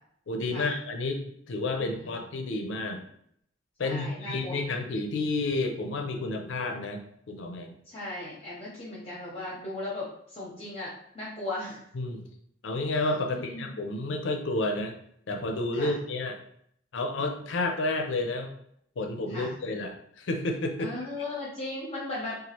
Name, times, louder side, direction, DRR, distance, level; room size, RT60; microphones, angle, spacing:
voice 1, 0.3-3.0 3.8-7.0 7.3-7.7 11.9-12.2 12.6-14.9 15.3-16.4 16.9-18.5 19.0-20.9, left 2 dB, 70° left, 4 dB, 0.5 m, -30 dB
voice 2, 1.7-2.1 3.8-4.7 7.9-11.8 13.3-13.7 15.7-16.0 19.3-19.6 20.8-22.4, left 2 dB, 30° left, -6 dB, 0.8 m, -37 dB
3.0 x 2.4 x 2.8 m, 0.70 s
head